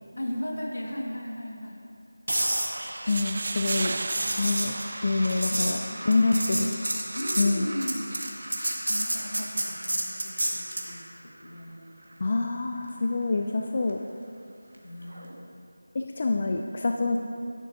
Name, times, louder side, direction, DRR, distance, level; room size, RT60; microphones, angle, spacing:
voice 1, 0.1-1.8 5.1-6.3 7.1-8.1 8.9-11.0 11.4-11.9 14.8-15.3, equal, 75° left, -1 dB, 2.0 m, -36 dB
sound 1, 2.3-10.9 15.1-15.3, right 1 dB, 90° right, 1.7 m, -31 dB
sound 2, 2.8-5.8, right 3 dB, 40° right, 0.3 m, -34 dB
voice 2, 3.1-4.0 4.4-4.7 5.0-5.8 6.0-6.8 7.4-7.7 12.2-14.0 15.9-17.2, left 3 dB, 35° left, 3 dB, 0.4 m, -26 dB
12.0 x 10.5 x 2.9 m, 2.5 s
figure-of-eight pair, 175°, 0 cm